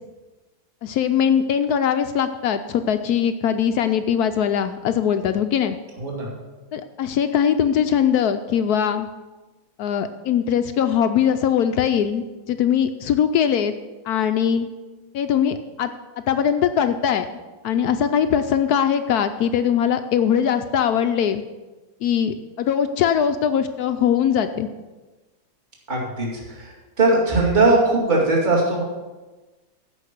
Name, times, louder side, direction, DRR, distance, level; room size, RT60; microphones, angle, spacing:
voice 1, 0.8-5.8 6.7-9.1 9.8-12.2 12.5-13.7 14.1-14.7 15.1-15.9 16.3-17.3 17.6-21.4 22.0-24.7, left 8 dB, 70° left, 9 dB, 0.9 m, -21 dB
voice 2, 6.0-6.3 25.9-28.8, right 2 dB, 25° right, -2 dB, 2.3 m, -20 dB
15.0 x 5.3 x 6.5 m, 1.2 s
omnidirectional pair, 2.0 m